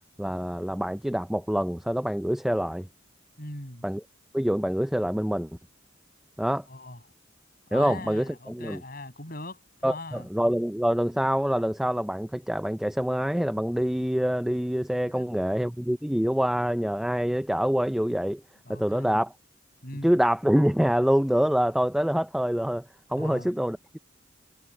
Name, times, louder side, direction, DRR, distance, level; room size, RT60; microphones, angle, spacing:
voice 1, 0.2-2.9 3.8-4.0 4.3-5.5 6.4-6.7 7.7-8.8 9.8-18.4 18.7-19.3 20.0-22.8 23.1-24.0, equal, ahead, 0.4 m, -25 dB
voice 2, 3.4-3.8 6.7-7.0 7.7-10.3 15.1-15.3 18.6-19.2 19.8-20.1 23.1-23.5, left 2 dB, 50° left, 7.6 m, -40 dB
head